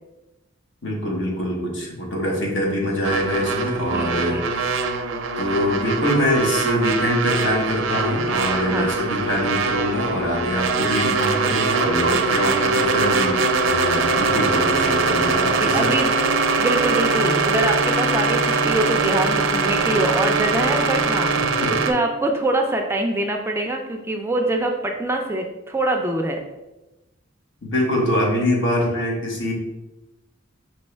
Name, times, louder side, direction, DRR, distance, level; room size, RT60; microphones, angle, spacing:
voice 1, 0.8-4.8 5.4-15.9 21.4-21.7 27.6-29.5, equal, 65° left, -2 dB, 1.2 m, -24 dB
sound 1, 3.0-21.9, right 4 dB, 80° right, 0.5 m, -22 dB
voice 2, 3.9-4.4 8.7-8.9 15.6-16.1 16.6-21.3 21.7-26.4, right 1 dB, 15° right, 3 dB, 0.4 m, -24 dB
5.3 x 2.9 x 3.3 m, 1.0 s
head